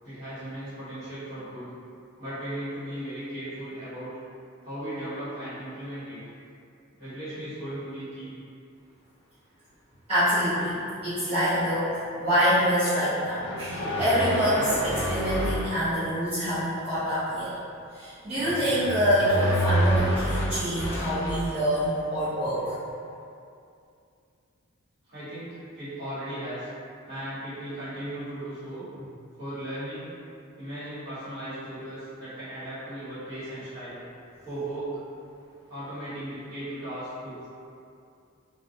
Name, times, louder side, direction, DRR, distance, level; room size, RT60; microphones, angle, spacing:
voice 1, 0.0-1.7 2.1-4.1 4.6-6.2 7.0-8.3 25.1-26.7 27.1-29.1 29.3-30.1 30.6-34.0 34.4-35.0 35.7-37.5, right 1 dB, 45° right, -14 dB, 1.2 m, -37 dB
voice 2, 10.1-17.5 17.9-22.8, equal, 25° right, -17 dB, 0.6 m, -26 dB
sound 1, 13.4-15.7 18.4-21.5, equal, 50° left, 0.4 m, -28 dB
2.3 x 2.1 x 2.6 m, 2.5 s
head